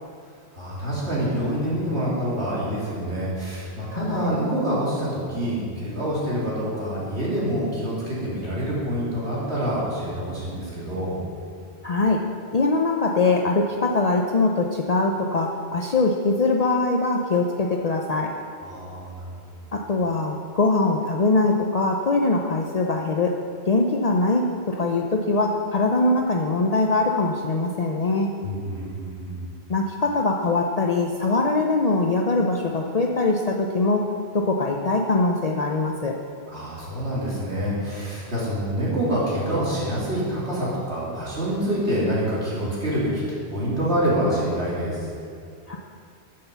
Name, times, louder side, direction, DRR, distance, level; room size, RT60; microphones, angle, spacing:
voice 1, 0.5-11.1 18.6-19.6 28.4-29.4 36.5-45.0, equal, 80° right, -8 dB, 3.4 m, -26 dB
voice 2, 3.9-4.3 11.8-12.2 12.5-18.3 19.7-23.4 23.7-28.3 29.7-34.1 34.3-36.2 45.7-45.8, left 3 dB, 45° left, 1 dB, 0.6 m, -22 dB
9.6 x 6.7 x 6.8 m, 2.4 s
omnidirectional pair, 1.1 m